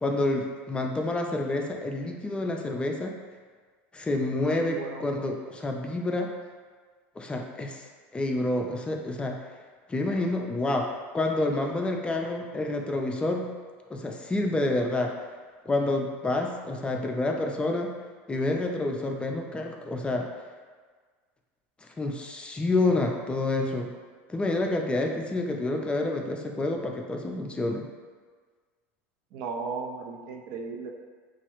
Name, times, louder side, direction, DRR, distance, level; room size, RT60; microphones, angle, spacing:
voice 1, 0.0-3.1 3.9-6.3 7.2-7.8 8.1-9.4 9.9-10.9 11.1-13.5 13.9-15.1 15.7-17.9 18.3-20.3 22.0-23.9 24.3-27.8, left 2 dB, 15° left, 2 dB, 0.3 m, -28 dB
voice 2, 4.6-5.1 29.3-30.9, right 5 dB, 65° right, 2 dB, 0.4 m, -36 dB
3.0 x 2.3 x 3.0 m, 1.5 s
supercardioid pair, 100°, 7 cm